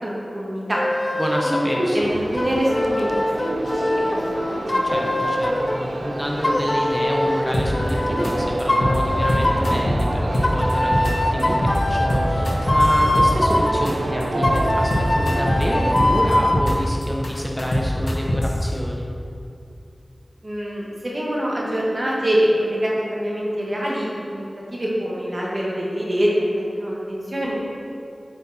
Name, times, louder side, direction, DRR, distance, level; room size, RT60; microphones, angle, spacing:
voice 1, 0.0-0.8 1.4-3.9 4.1-4.8 20.4-24.4 24.7-27.6, equal, 45° right, -5 dB, 1.8 m, -24 dB
sound 1, 0.8-1.8 2.3-5.8 6.4-8.3 8.7-9.8 10.4-13.7 14.4-16.6, left 1 dB, 45° left, 0.6 m, -22 dB
voice 2, 1.2-2.1 4.8-19.1, equal, 10° left, -2 dB, 0.8 m, -28 dB
sound 2, 2.0-16.5, right 2 dB, 85° right, 0.6 m, -30 dB
sound 3, 7.5-7.9 8.2-8.3 8.6-9.0 9.3-10.0 10.3-11.1 11.4-11.8 12.1-13.5 13.9-14.0 14.2-14.6 14.9-15.6 16.0-16.7 17.0-18.6, left 1 dB, 75° left, 1.4 m, -22 dB
7.8 x 5.8 x 4.3 m, 2.5 s
wide cardioid pair, 60°, 0 cm